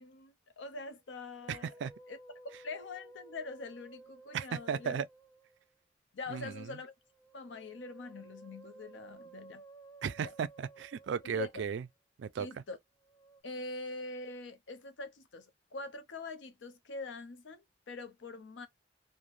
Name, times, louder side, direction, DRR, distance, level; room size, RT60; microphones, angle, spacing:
voice 1, 0.0-1.7 2.1-2.2 2.6-5.0 6.1-6.9 7.3-9.6 10.2-10.3 11.2-11.5 12.4-12.8 13.4-18.7, left 3 dB, 80° left, 0.6 m, -44 dB
Musical instrument, 1.1-5.7 7.0-11.9 13.0-13.4, right 3 dB, 20° left, 0.5 m, -56 dB
voice 2, 1.5-1.9 4.3-5.1 6.3-6.6 10.0-11.8 12.2-12.5, right 7 dB, 70° right, 0.3 m, -35 dB
3.1 x 2.1 x 2.4 m
head